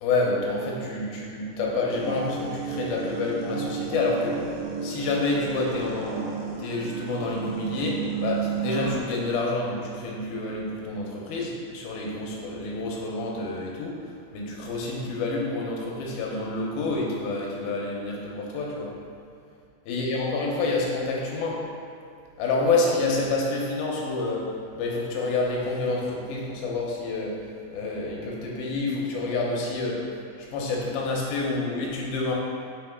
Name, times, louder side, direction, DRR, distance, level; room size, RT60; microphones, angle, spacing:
voice 1, 0.0-6.3 6.6-18.9 19.9-21.6 22.4-27.4 27.7-30.1 30.4-32.3, left 3 dB, 85° left, -3 dB, 2.6 m, -28 dB
sound 1, 1.9-8.9, right 6 dB, 75° right, 2.1 m, -32 dB
6.2 x 4.6 x 3.5 m, 2.4 s
omnidirectional pair, 4.3 m